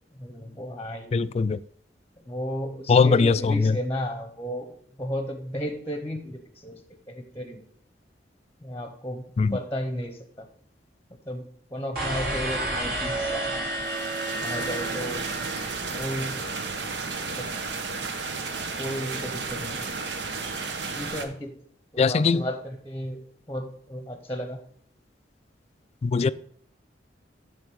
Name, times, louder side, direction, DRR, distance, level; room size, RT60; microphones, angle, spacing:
voice 1, 0.2-1.3 2.3-4.7 5.0-6.8 7.1-7.6 8.6-10.5 11.3-11.4 11.7-13.8 14.4-15.3 16.0-16.4 17.2-17.5 18.8-19.8 20.9-21.5 21.9-23.2 23.5-24.6, equal, 15° left, 0.9 m, -34 dB
voice 2, 1.1-1.6 2.9-3.8 9.4-9.6 22.0-22.4 26.0-26.3, left 4 dB, 35° left, 0.3 m, -21 dB
sound 1, 11.9-16.1, right 1 dB, 60° right, 3.3 m, -31 dB
sound 2, 13.8-21.3, right 4 dB, 75° right, 1.0 m, -33 dB
10.5 x 3.5 x 6.2 m
head